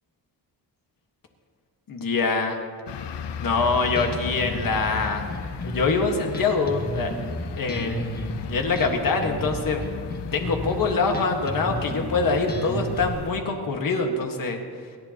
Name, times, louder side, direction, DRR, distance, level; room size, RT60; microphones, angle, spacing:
voice 1, 1.9-2.6 3.4-5.2 5.6-7.1 7.6-9.8 10.3-14.6, left 4 dB, 50° left, 3 dB, 1.7 m, -24 dB
sound 1, 2.9-13.3, left 7 dB, 80° left, 0.9 m, -38 dB
Bass guitar, 3.5-13.1, left 1 dB, 20° left, 1.4 m, -33 dB
29.0 x 11.0 x 2.9 m, 2.1 s
wide cardioid pair, 170°, 41 cm